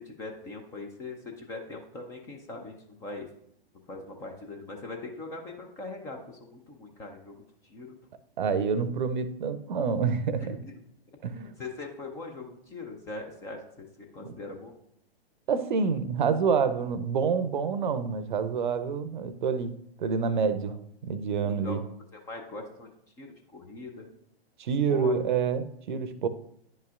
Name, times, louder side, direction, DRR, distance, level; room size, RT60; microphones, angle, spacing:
voice 1, 0.0-3.3 3.9-7.4 7.6-8.0 10.4-10.7 11.3-14.7 21.4-21.8 22.1-22.9 23.2-24.1 24.9-25.2, left 2 dB, 10° left, 0.4 m, -41 dB
voice 2, 8.4-10.6 11.2-11.4 14.2-14.3 15.5-19.7 20.0-21.8 24.6-26.3, right 5 dB, 50° right, 0.6 m, -27 dB
10.0 x 5.4 x 2.4 m
figure-of-eight pair, 120°, 31 cm